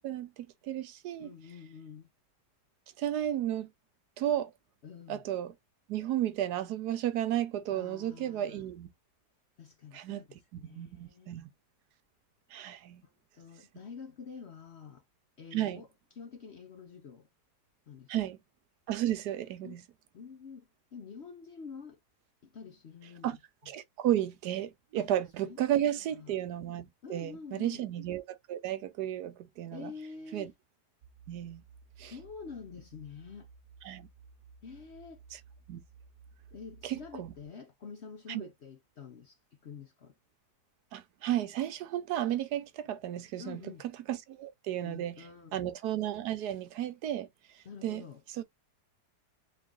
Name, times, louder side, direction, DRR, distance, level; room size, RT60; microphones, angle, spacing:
voice 1, 0.0-1.3 3.0-3.7 4.2-4.5 5.1-5.5 5.9-8.9 9.9-10.2 10.6-11.5 12.5-13.0 15.5-15.8 18.1-18.4 18.9-19.8 23.2-23.4 23.7-29.9 30.3-30.5 31.3-31.6 32.0-32.1 33.8-34.1 35.7-35.8 36.8-37.3 38.3-38.5 40.9-43.7 44.1-45.2 45.5-47.3 47.8-48.0 48.3-48.4, right 12 dB, 75° right, 1.2 m, -33 dB
voice 2, 1.2-2.1 4.8-5.2 7.7-8.6 9.6-11.4 13.0-15.0 15.4-17.3 17.9-18.1 19.6-19.8 20.1-22.0 22.4-23.4 25.0-25.1 25.4-26.4 27.0-27.8 29.7-30.5 32.0-33.5 34.6-35.2 36.5-40.2 43.4-43.9 44.8-45.7 47.6-48.2, left 5 dB, 55° left, 0.7 m, -48 dB
sound 1, 31.0-37.5, right 5 dB, 55° right, 1.2 m, -56 dB
3.7 x 3.2 x 3.7 m
omnidirectional pair, 1.8 m